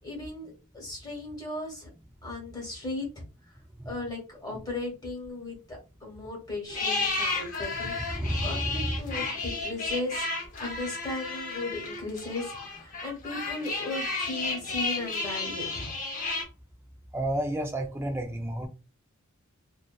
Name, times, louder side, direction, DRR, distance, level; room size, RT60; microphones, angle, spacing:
voice 1, 0.0-1.9 2.2-3.2 3.8-10.3 10.6-15.9, left 2 dB, 20° left, 1.1 m, -36 dB
sound 1, 6.7-16.4, left 3 dB, 40° left, 0.7 m, -32 dB
voice 2, 8.1-9.3 17.1-18.7, right 1 dB, 10° right, 0.4 m, -31 dB
2.7 x 2.2 x 2.2 m
head